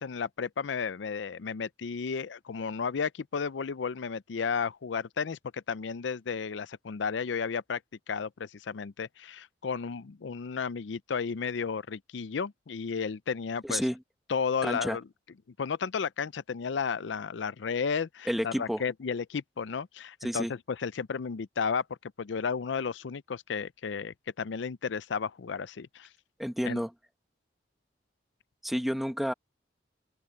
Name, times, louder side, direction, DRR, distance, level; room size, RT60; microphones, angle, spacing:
voice 1, 0.0-7.8 8.1-13.8 14.3-15.0 15.6-26.1 26.6-26.8, left 6 dB, 85° left, 0.5 m, -33 dB
voice 2, 13.6-14.0 14.6-15.0 18.3-18.8 20.2-20.5 26.4-26.9 28.6-29.3, equal, ahead, 1.4 m, -30 dB
open air
head